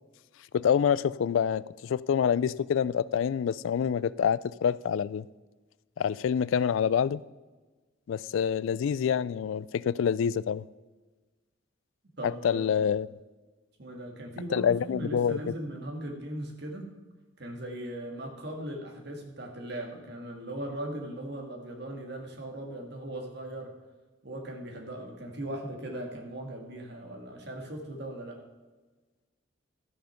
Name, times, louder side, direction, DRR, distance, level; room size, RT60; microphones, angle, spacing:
voice 1, 0.5-5.3 6.0-7.2 8.1-10.6 12.2-13.1 14.5-15.4, left 7 dB, 75° left, 0.3 m, -26 dB
voice 2, 12.2-12.9 13.8-16.9 17.4-23.7 24.2-28.4, right 1 dB, 55° right, 1.9 m, -39 dB
12.5 x 6.4 x 5.7 m
head